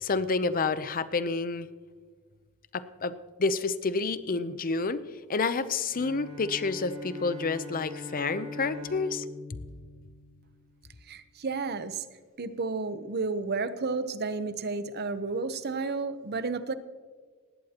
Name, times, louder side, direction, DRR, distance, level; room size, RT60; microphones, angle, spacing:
voice 1, 0.0-1.7 2.7-3.1 3.4-5.0 5.3-9.2, left 4 dB, 40° left, 13 dB, 0.6 m, -29 dB
Bowed string instrument, 5.9-10.8, left 3 dB, 35° right, 4.5 m, -42 dB
voice 2, 11.1-12.0 12.4-16.7, right 4 dB, 50° right, 12 dB, 0.9 m, -32 dB
19.0 x 16.5 x 2.9 m, 1.5 s
head